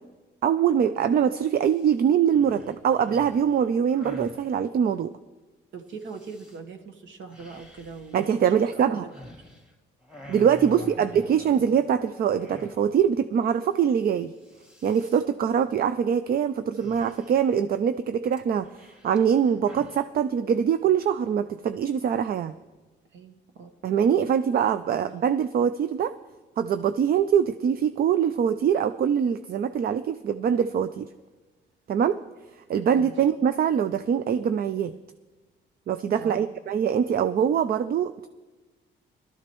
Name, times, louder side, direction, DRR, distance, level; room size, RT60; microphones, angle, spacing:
voice 1, 0.4-5.1 8.1-9.1 10.3-14.3 14.8-22.5 23.8-26.1 26.6-31.1 31.9-32.2 32.7-34.9 35.9-38.3, right 8 dB, 50° right, 12 dB, 0.4 m, -23 dB
sound 1, 1.7-1.9 2.3-4.4 6.0-6.6 7.3-9.7 10.0-12.0 12.4-13.1 13.4-13.5 13.8-14.1 14.3-15.2 16.7-17.6 18.3-20.0, left 1 dB, 5° right, 2.6 m, -47 dB
voice 2, 5.7-9.1 9.5-9.6 10.7-11.7 23.1-23.7 25.0-25.2 32.9-33.1 36.2-36.5, right 5 dB, 70° right, 5 dB, 1.3 m, -42 dB
18.5 x 12.5 x 3.1 m, 1.2 s
cardioid pair, 90°, 20 cm